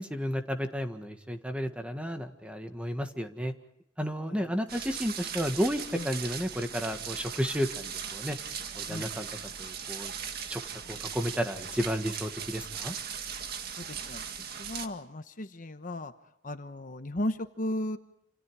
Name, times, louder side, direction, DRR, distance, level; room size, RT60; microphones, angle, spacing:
voice 1, 0.0-3.5 4.0-8.4 8.7-9.3 9.6-10.1 10.5-10.6 10.9-12.9, equal, 5° right, 6 dB, 1.6 m, -32 dB
sound 1, 4.7-14.9, right 7 dB, 55° right, 1.8 m, -39 dB
voice 2, 13.8-14.2 14.6-16.1 16.4-18.0, left 1 dB, 45° left, 9 dB, 1.1 m, -35 dB
28.5 x 27.5 x 4.9 m, 0.74 s
head